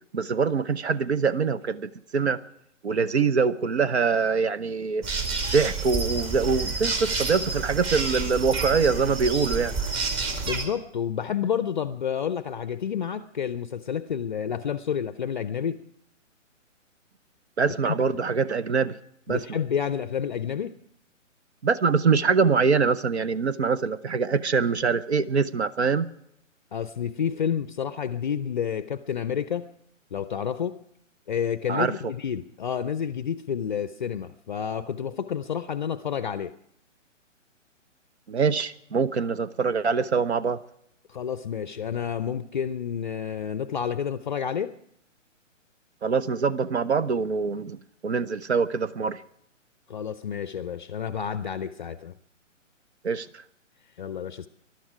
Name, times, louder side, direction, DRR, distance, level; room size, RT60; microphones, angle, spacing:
voice 1, 0.1-2.4 2.8-5.0 5.5-9.7 17.6-19.0 19.3-19.6 21.6-26.1 31.7-31.9 38.3-40.6 46.0-49.2 53.0-53.4, right 5 dB, 55° right, 0.9 m, -24 dB
sound 1, 5.0-10.7, right 4 dB, 25° right, 2.0 m, -29 dB
voice 2, 10.5-15.8 17.8-17.9 19.3-20.8 26.7-29.7 30.1-30.8 31.3-36.5 41.1-44.7 49.9-52.2 54.0-54.5, left 8 dB, 40° left, 0.6 m, -29 dB
21.0 x 12.0 x 4.9 m
figure-of-eight pair, 135°, 39 cm